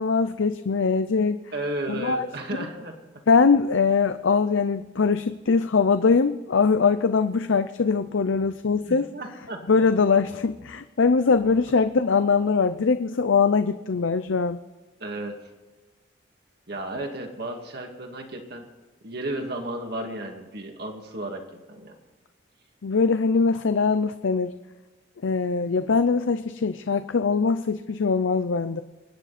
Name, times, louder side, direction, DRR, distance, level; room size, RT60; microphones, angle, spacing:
voice 1, 0.0-1.4 1.9-2.3 3.3-9.1 9.7-14.6 22.8-24.5 25.2-28.8, left 5 dB, 75° left, 10 dB, 0.6 m, -22 dB
voice 2, 1.5-3.0 8.7-9.6 15.0-15.5 16.7-18.7 19.0-22.0, right 1 dB, 55° right, 3 dB, 2.3 m, -33 dB
25.0 x 9.9 x 4.3 m, 1.3 s
head